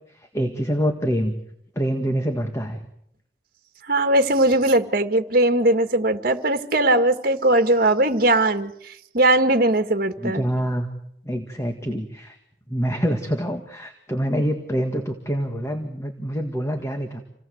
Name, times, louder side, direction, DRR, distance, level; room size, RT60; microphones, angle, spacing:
voice 1, 0.1-1.4 1.8-2.8 10.2-10.9 11.2-12.4 12.7-17.2, equal, 15° left, 5 dB, 1.8 m, -26 dB
voice 2, 3.9-8.7 9.1-10.4, right 1 dB, 50° right, 8 dB, 1.9 m, -19 dB
28.0 x 18.5 x 7.9 m, 0.75 s
head